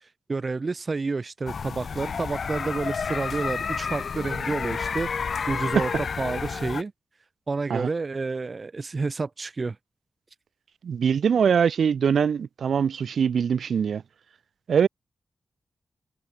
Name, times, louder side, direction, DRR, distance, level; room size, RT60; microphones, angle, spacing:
voice 1, 0.0-5.9 6.2-6.9 7.5-9.8, right 3 dB, 35° right, 1.3 m, -30 dB
sound 1, 1.5-6.8, left 6 dB, 55° left, 1.2 m, -30 dB
voice 2, 10.8-14.0 14.7-14.9, right 7 dB, 75° right, 2.4 m, -22 dB
wide cardioid pair, 150°, 0 cm